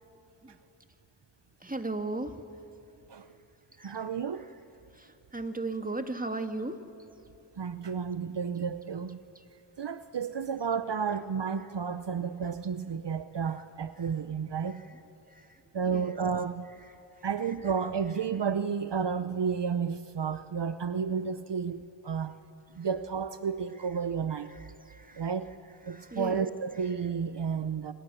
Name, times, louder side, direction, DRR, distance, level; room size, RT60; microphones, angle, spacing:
voice 1, 1.6-2.4 3.8-4.0 5.0-6.8 9.4-9.5 14.7-15.0 15.3-15.6 15.9-16.2 17.2-17.3 24.5-25.3 25.9-26.5, right 2 dB, 20° right, 7 dB, 1.9 m, -37 dB
voice 2, 3.8-4.5 7.6-9.2 9.8-14.8 15.7-16.7 17.2-22.4 22.8-24.5 25.2-25.5 25.8-27.9, right 6 dB, 60° right, 12 dB, 0.9 m, -32 dB
29.5 x 26.5 x 7.0 m, 2.8 s
cardioid pair, 50°, 47 cm